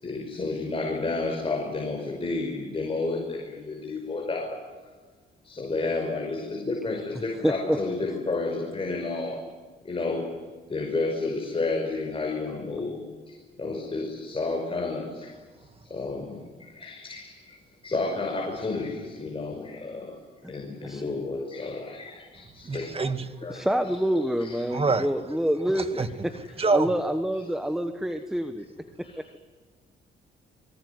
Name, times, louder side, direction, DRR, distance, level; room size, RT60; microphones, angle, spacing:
voice 1, 0.0-4.6 5.4-9.4 9.8-10.3 10.7-13.0 13.3-15.3 15.8-17.6 17.8-20.2 20.5-22.9 23.4-23.7 24.4-24.6 29.0-29.2, left 3 dB, 30° left, 5.7 m, -31 dB
voice 2, 7.4-7.8 20.4-20.5 20.8-21.1 23.5-28.6 29.0-29.3, equal, ahead, 1.4 m, -27 dB
voice 3, 22.7-23.2 24.7-25.1 26.0-26.1 26.6-26.9, right 4 dB, 30° right, 2.0 m, -24 dB
24.5 x 23.5 x 9.7 m
cardioid pair, 90°, 20 cm